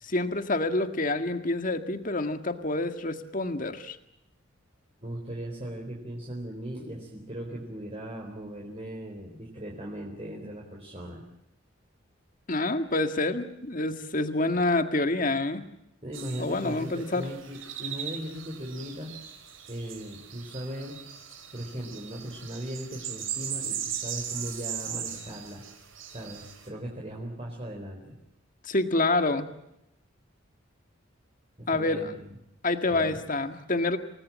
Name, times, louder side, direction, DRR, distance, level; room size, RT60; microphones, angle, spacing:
voice 1, 0.0-4.0 12.5-15.6 16.4-17.3 28.6-29.5 31.7-32.0 32.6-34.0, left 2 dB, 40° left, 8 dB, 1.8 m, -27 dB
voice 2, 5.0-11.2 16.0-19.1 19.7-21.0 21.5-25.6 26.1-28.2 31.6-32.4 32.9-33.2, equal, 30° right, -1 dB, 4.2 m, -38 dB
sound 1, 16.1-26.7, right 9 dB, 80° right, 5.3 m, -39 dB
28.5 x 19.0 x 7.5 m, 0.84 s
head